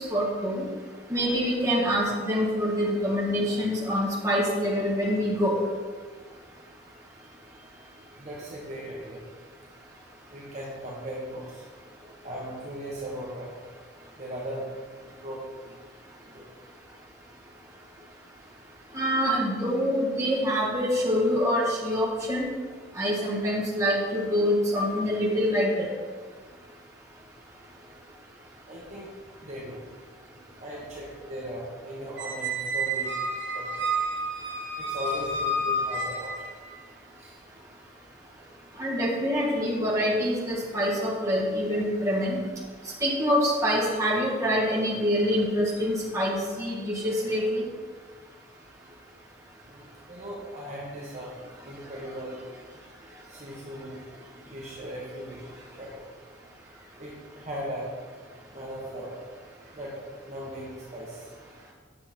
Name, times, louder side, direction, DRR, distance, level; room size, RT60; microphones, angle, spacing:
voice 1, 0.1-0.6 1.1-5.6 18.9-22.4 22.9-25.9 38.8-42.4 43.0-47.7, equal, 15° right, -5 dB, 1.8 m, -25 dB
voice 2, 7.5-9.2 10.3-11.6 12.2-13.5 14.2-14.6 15.0-15.7 16.3-16.5 19.2-19.3 28.7-29.8 30.6-33.2 33.5-33.8 34.8-36.3 37.2-37.4 39.0-39.1 49.6-51.3 51.6-52.4 53.3-54.0 54.4-56.0 56.6-57.9 58.5-59.2 59.6-61.3, equal, 35° right, -5 dB, 1.3 m, -38 dB
Squeak, 32.2-36.7, right 1 dB, 70° right, 1.3 m, -30 dB
8.9 x 6.5 x 4.4 m, 1.5 s
head